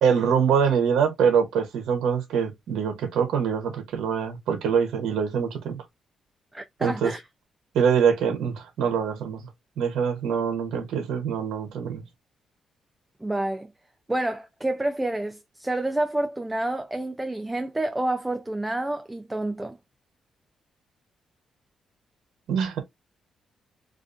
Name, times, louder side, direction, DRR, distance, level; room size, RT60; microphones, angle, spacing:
voice 1, 0.0-5.8 6.8-7.1 7.7-9.4 9.8-12.0 22.5-22.8, right 7 dB, 85° right, 0.7 m, -24 dB
voice 2, 6.5-7.2 13.2-13.7 14.1-19.8, right 1 dB, 15° right, 0.4 m, -28 dB
2.4 x 2.4 x 2.4 m
cardioid pair, 85°, 0 cm